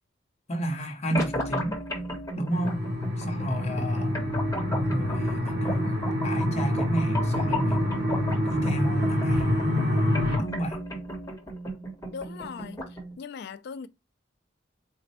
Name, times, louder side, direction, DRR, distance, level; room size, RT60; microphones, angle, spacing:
voice 1, 0.5-1.8 2.4-2.8 3.2-4.3 4.7-6.0 6.2-7.9 8.5-9.5 10.4-10.8, right 1 dB, 35° left, 0.7 m, -31 dB
sound 1, 1.1-13.1, equal, 15° left, 1.0 m, -34 dB
sound 2, 2.5-10.4, left 1 dB, 60° right, 2.7 m, -27 dB
voice 2, 12.1-12.8 13.2-13.9, left 6 dB, 60° left, 0.3 m, -38 dB
4.1 x 2.1 x 4.1 m
head